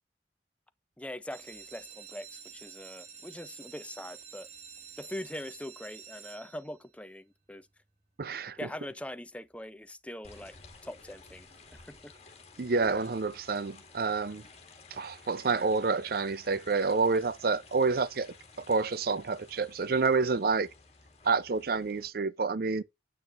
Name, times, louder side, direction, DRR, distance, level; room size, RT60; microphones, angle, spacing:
voice 1, 1.0-4.5 5.0-7.7 8.5-10.6 10.8-12.1, left 1 dB, 5° left, 0.5 m, -42 dB
sound 1, 1.3-6.9 7.5-8.0 8.4-8.5 8.8-8.9 9.3-9.4, right 7 dB, 35° right, 1.5 m, -49 dB
voice 2, 8.2-8.6 12.6-14.4 14.9-18.3 18.7-20.7 21.2-22.8, right 4 dB, 50° right, 0.5 m, -28 dB
sound 2, 10.2-22.1, left 3 dB, 35° left, 2.3 m, -54 dB
8.7 x 6.1 x 2.5 m
head